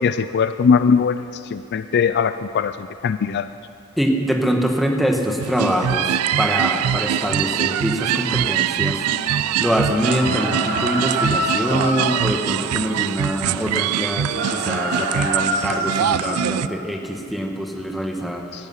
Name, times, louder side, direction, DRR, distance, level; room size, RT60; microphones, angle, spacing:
voice 1, 0.0-3.5 18.5-18.7, left 6 dB, 50° left, 12 dB, 0.3 m, -20 dB
voice 2, 4.0-9.0 9.6-18.4, equal, ahead, 2 dB, 1.4 m, -24 dB
sound 1, 5.4-16.7, right 10 dB, 80° right, 0.3 m, -23 dB
Alarm, 7.1-15.1, left 2 dB, 25° left, 1.4 m, -40 dB
sound 2, 10.0-12.2 14.3-16.4, right 1 dB, 50° right, 2.5 m, -25 dB
19.0 x 13.0 x 5.7 m, 2.7 s
head